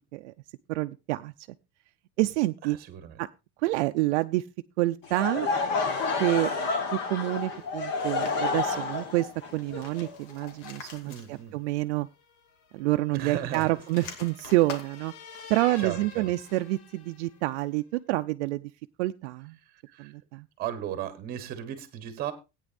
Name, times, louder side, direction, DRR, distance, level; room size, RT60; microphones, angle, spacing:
voice 1, 0.7-1.3 2.2-2.8 3.2-3.3 3.6-4.4 4.8-5.5 6.2-6.5 6.9-12.1 12.7-15.1 15.5-18.7 19.0-19.6 20.0-20.5, right 18 dB, 70° right, 9 dB, 0.6 m, -28 dB
voice 2, 2.7-3.2 11.0-11.6 13.1-13.8 15.8-16.2 19.9-20.1 20.6-22.3, right 11 dB, 25° right, 11 dB, 1.2 m, -35 dB
Laughter / Crowd, 5.0-11.0, left 4 dB, 30° left, 1.2 m, -30 dB
sound 1, 7.9-9.1 9.5-11.7 12.0-12.1 13.3-16.8, left 5 dB, 80° left, 2.4 m, -47 dB
sound 2, 12.1-17.5, left 7 dB, 60° left, 1.5 m, -48 dB
17.0 x 9.2 x 2.5 m, 0.26 s
supercardioid pair, 180°, 35 cm